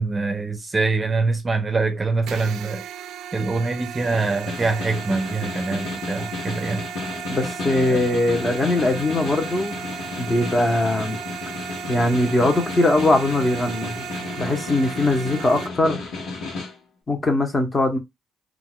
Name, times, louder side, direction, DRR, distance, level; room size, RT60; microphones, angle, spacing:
voice 1, 0.0-2.8 3.3-6.9 7.9-8.0, right 3 dB, 25° right, 0.6 m, -24 dB
sound 1, 2.3-15.7, right 9 dB, 85° right, 0.4 m, -35 dB
Snare drum, 4.0-16.7, left 3 dB, 70° left, 1.3 m, -33 dB
voice 2, 7.3-9.7 10.2-11.2 11.9-14.0 14.4-16.0 17.1-18.0, left 2 dB, 25° left, 1.1 m, -21 dB
3.8 x 2.5 x 2.3 m
cardioid pair, 90°, 0 cm